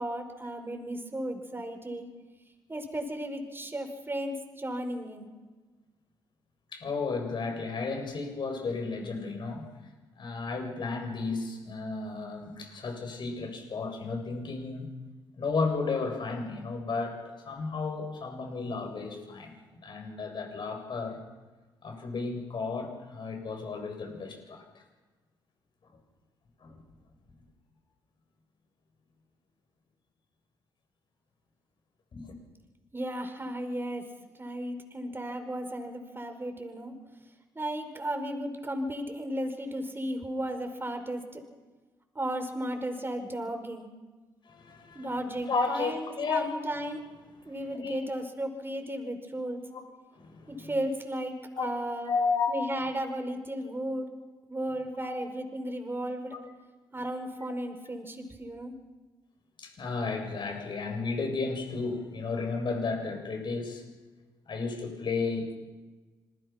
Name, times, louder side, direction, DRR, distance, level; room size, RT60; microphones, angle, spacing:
voice 1, 0.0-2.1 2.7-5.3 32.9-34.1 34.4-36.9 37.6-41.4 42.2-43.9 44.9-47.0 47.5-49.6 50.5-52.1 52.5-54.1 54.5-56.4 56.9-58.7, right 1 dB, 20° right, 6 dB, 5.4 m, -35 dB
voice 2, 6.7-9.6 10.2-14.9 15.4-19.5 19.8-21.2 21.8-24.8 26.6-26.8 32.1-32.4 44.4-45.1 45.5-46.5 47.4-48.0 49.7-49.8 50.1-50.7 51.5-51.7 52.1-52.5 55.0-55.1 56.3-56.5 59.6-63.8 64.5-65.5, left 4 dB, 50° left, 3 dB, 7.6 m, -33 dB
27.5 x 21.5 x 6.1 m, 1.3 s
hypercardioid pair, 50°, 10 cm